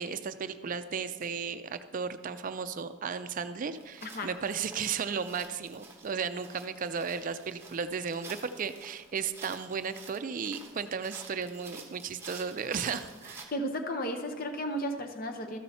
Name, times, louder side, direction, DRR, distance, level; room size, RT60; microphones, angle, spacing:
voice 1, 0.0-13.5, right 6 dB, 40° right, 11 dB, 0.4 m, -35 dB
sound 1, 3.7-13.4, right 3 dB, 15° right, 0.9 m, -50 dB
voice 2, 13.5-15.6, equal, 45° left, 5 dB, 0.7 m, -34 dB
13.5 x 5.5 x 4.2 m, 1.4 s
head